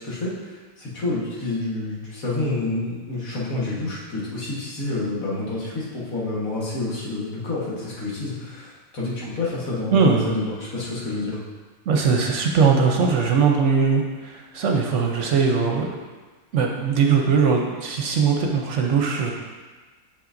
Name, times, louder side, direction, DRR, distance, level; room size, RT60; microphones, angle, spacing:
voice 1, 0.0-11.4, left 2 dB, 75° left, -6 dB, 1.9 m, -28 dB
voice 2, 9.9-10.2 11.9-15.9 16.5-19.3, right 5 dB, 65° right, 1 dB, 0.9 m, -20 dB
6.8 x 5.7 x 2.6 m, 1.4 s
omnidirectional pair, 1.5 m